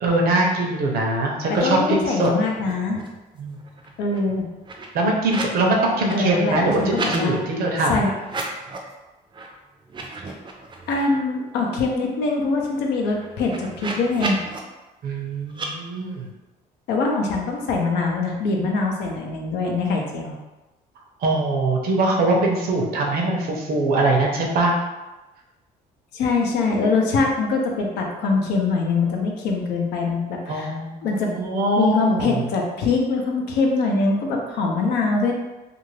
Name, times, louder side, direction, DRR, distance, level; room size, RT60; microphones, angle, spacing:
voice 1, 0.0-2.3 3.4-3.7 4.9-8.1 15.0-16.3 21.2-24.7 30.5-32.4, right 2 dB, 65° right, 0 dB, 0.7 m, -22 dB
voice 2, 1.6-3.0 4.0-4.5 6.1-7.4 7.9-8.2 10.3-10.4 10.9-14.4 16.9-20.3 26.1-30.7 31.0-31.3 31.8-35.3, left 3 dB, 80° left, 1 dB, 0.6 m, -23 dB
sound 1, 2.1-3.2 3.5-5.6 5.9-7.2 8.2-8.9 9.3-9.5 9.8-11.2 11.6-11.7 11.9-14.6 15.5-15.7, right 3 dB, 30° right, 0.5 m, -34 dB
2.5 x 2.4 x 3.2 m, 1.1 s
cardioid pair, 110°, 17 cm